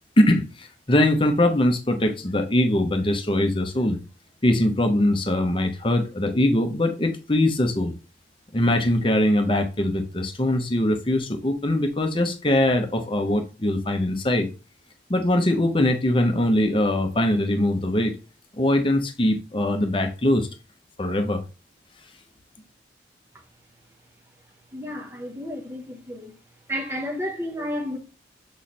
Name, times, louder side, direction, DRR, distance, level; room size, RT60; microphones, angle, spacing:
voice 1, 0.2-4.0 4.4-7.9 8.5-14.5 15.1-18.1 18.5-20.5 21.0-21.4, left 1 dB, 25° left, 0.8 m, -22 dB
voice 2, 24.7-26.4 26.7-28.0, equal, 15° right, 0.8 m, -31 dB
7.2 x 3.1 x 4.2 m
head